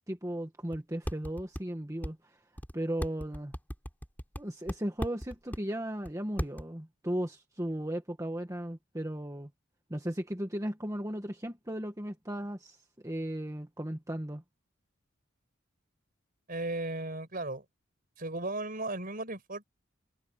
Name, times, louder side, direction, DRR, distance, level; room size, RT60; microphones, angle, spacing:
voice 1, 0.1-2.4 2.7-3.5 4.4-9.5 9.9-12.8 13.0-14.4, right 1 dB, 15° right, 1.4 m, -36 dB
sound 1, 0.7-0.8 1.1-1.6 2.0-2.1 2.6-2.7 3.0-4.4 4.7-5.6 6.1-6.2 6.4-6.6, equal, 10° left, 5.2 m, -35 dB
voice 2, 16.5-17.6 18.2-19.7, right 2 dB, 45° right, 5.0 m, -35 dB
head